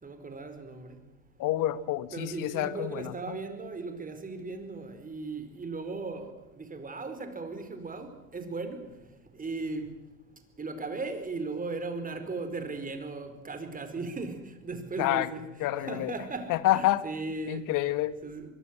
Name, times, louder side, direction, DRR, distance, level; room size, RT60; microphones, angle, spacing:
voice 1, 0.0-1.0 2.1-8.8 9.4-9.9 10.6-17.6 18.2-18.5, right 3 dB, 20° right, 8 dB, 4.9 m, -37 dB
voice 2, 1.4-3.4 15.0-15.3 15.6-16.1 16.5-17.1 17.5-18.1, left 14 dB, 50° left, 14 dB, 1.8 m, -28 dB
23.5 x 23.0 x 7.7 m, 1.1 s
hypercardioid pair, 85°, 39 cm